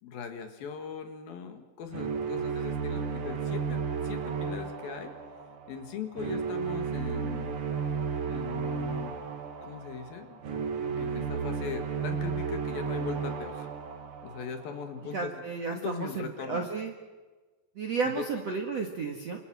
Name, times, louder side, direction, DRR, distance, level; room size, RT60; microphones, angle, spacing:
voice 1, 0.0-5.1 5.7-7.6 8.3-9.2 9.6-10.4 11.0-13.7 14.2-15.4 15.7-16.7 18.0-18.2, left 6 dB, 60° left, 6 dB, 3.1 m, -40 dB
sound 1, 1.9-15.0, right 6 dB, 80° right, 1.2 m, -33 dB
voice 2, 15.1-16.9 17.8-19.4, right 4 dB, 55° right, 3 dB, 1.9 m, -32 dB
29.0 x 27.0 x 6.2 m, 1.3 s
omnidirectional pair, 5.3 m